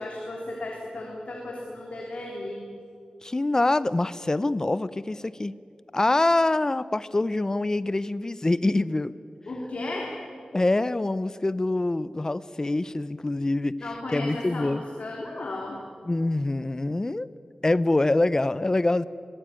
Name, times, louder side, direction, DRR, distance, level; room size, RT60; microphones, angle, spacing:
voice 1, 0.0-2.6 9.5-10.1 13.8-15.8, left 2 dB, 65° left, -1 dB, 3.2 m, -35 dB
voice 2, 3.2-5.5 5.9-9.1 10.5-13.7 14.1-14.8 16.1-17.3 17.6-19.0, left 2 dB, 25° left, 17 dB, 0.6 m, -25 dB
24.0 x 17.5 x 9.0 m, 2.2 s
wide cardioid pair, 110°, 2 cm